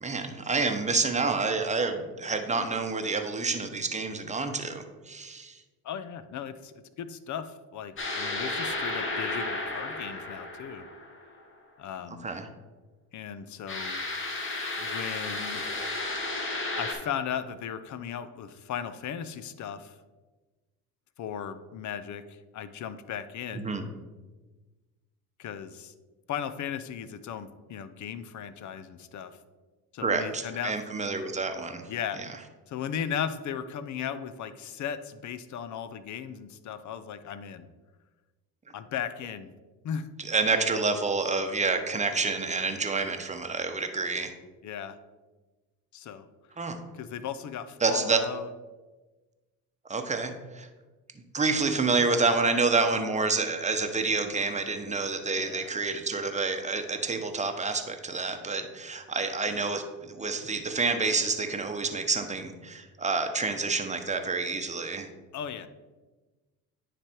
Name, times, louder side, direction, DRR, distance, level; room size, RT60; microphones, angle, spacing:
voice 1, 0.0-5.5 12.2-12.5 23.5-23.8 30.0-31.8 40.2-44.3 46.6-46.8 47.8-48.2 49.9-50.7 51.3-65.1, right 4 dB, 20° right, 6 dB, 0.9 m, -28 dB
voice 2, 5.8-10.9 11.8-12.3 13.1-14.0 14.8-15.7 16.0-16.1 16.8-20.0 21.2-23.7 25.4-25.9 26.3-29.4 29.9-30.8 31.9-32.3 32.7-37.7 38.7-39.5 39.8-40.1 44.6-45.0 45.9-46.3 46.9-48.5 55.4-55.8 65.3-65.7, left 8 dB, 50° left, 13 dB, 0.6 m, -36 dB
sound 1, 8.0-11.4 13.7-16.9, left 2 dB, 30° left, 1.4 m, -33 dB
9.7 x 3.4 x 4.4 m, 1.2 s
supercardioid pair, 75°, 39 cm